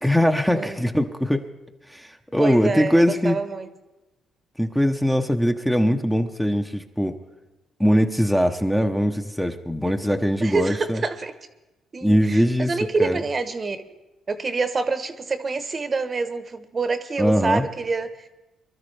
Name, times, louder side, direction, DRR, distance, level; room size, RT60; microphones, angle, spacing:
voice 1, 0.0-1.4 1.9-3.4 4.6-7.2 7.8-11.0 12.0-12.7 13.0-13.2 17.2-17.6, equal, ahead, 5 dB, 0.8 m, -21 dB
voice 2, 2.4-3.7 10.4-11.3 11.9-13.8 14.3-18.3, right 4 dB, 35° right, 10 dB, 1.0 m, -26 dB
23.0 x 12.5 x 3.3 m, 1.0 s
cardioid pair, 90°, 0 cm